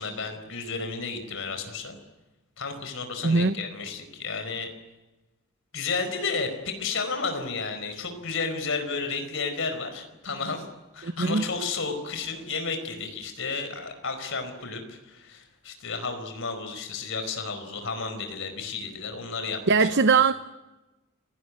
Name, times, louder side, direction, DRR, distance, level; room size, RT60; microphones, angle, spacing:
voice 1, 0.0-2.0 2.6-4.7 5.7-10.7 10.9-20.2, left 4 dB, 60° left, 4.8 m, -32 dB
voice 2, 3.2-3.6 11.0-11.4 19.7-20.3, right 4 dB, 55° right, 0.8 m, -21 dB
29.0 x 17.5 x 9.7 m
head